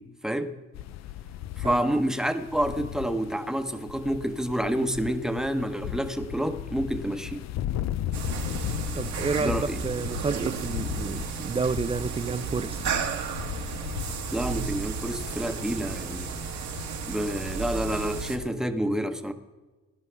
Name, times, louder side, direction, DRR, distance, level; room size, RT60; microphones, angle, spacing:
voice 1, 0.2-0.6 1.6-7.5 9.4-9.8 14.3-16.3 17.1-19.3, right 1 dB, ahead, 1.0 m, -28 dB
sound 1, 0.7-18.5, left 12 dB, 60° left, 0.5 m, -37 dB
sound 2, 8.1-18.4, right 6 dB, 65° right, 1.5 m, -33 dB
voice 2, 8.9-12.8, right 4 dB, 20° right, 0.4 m, -30 dB
18.0 x 11.0 x 3.4 m
cardioid pair, 90°, 30 cm